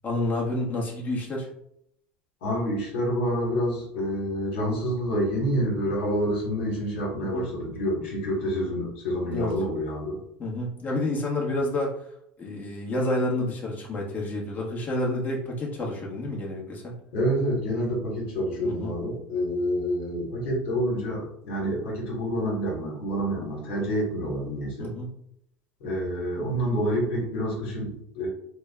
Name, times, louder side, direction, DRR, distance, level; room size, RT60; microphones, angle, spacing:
voice 1, 0.0-1.5 7.2-7.5 9.3-9.5 10.4-11.9 12.4-16.9 18.6-18.9 24.8-25.1, left 1 dB, 30° left, -2 dB, 1.0 m, -29 dB
voice 2, 2.4-10.2 17.1-24.9 25.8-28.3, equal, 80° left, -2 dB, 1.3 m, -28 dB
3.3 x 2.2 x 3.4 m, 0.73 s
supercardioid pair, 95°, 6 cm